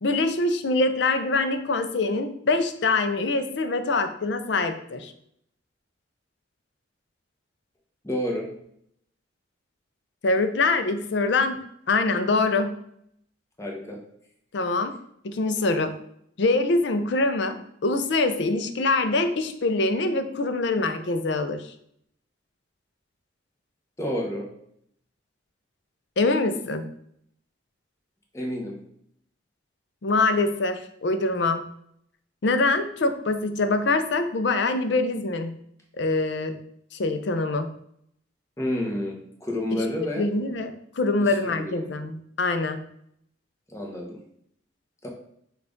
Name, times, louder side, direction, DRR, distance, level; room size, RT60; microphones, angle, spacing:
voice 1, 0.0-5.1 10.2-11.6 11.9-12.8 14.5-14.9 15.2-15.9 16.4-21.7 26.2-26.9 30.0-31.6 32.4-35.5 36.0-36.6 36.9-37.7 39.7-39.8 40.2-42.8, left 3 dB, 60° left, 8 dB, 0.5 m, -24 dB
voice 2, 8.0-8.5 13.6-14.0 24.0-24.5 28.3-28.7 38.6-40.3 41.2-42.0 43.7-44.2 45.0-45.1, left 1 dB, 15° left, 0 dB, 0.8 m, -30 dB
5.5 x 2.4 x 3.7 m, 0.71 s
head